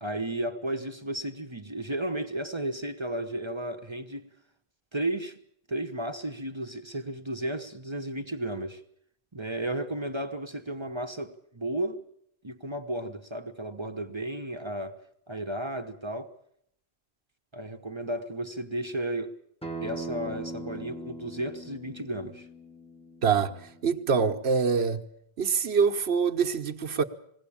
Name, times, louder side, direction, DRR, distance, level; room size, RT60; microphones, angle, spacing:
voice 1, 0.0-4.3 4.9-5.4 5.7-8.8 9.3-12.0 12.4-15.0 15.3-16.3 17.5-19.3 19.8-22.5, right 1 dB, 30° right, 1.0 m, -33 dB
Acoustic guitar, 19.6-24.8, right 1 dB, 5° left, 1.1 m, -41 dB
voice 2, 23.2-25.0 25.4-27.0, right 5 dB, 80° right, 1.3 m, -25 dB
21.0 x 16.5 x 8.6 m
omnidirectional pair, 1.1 m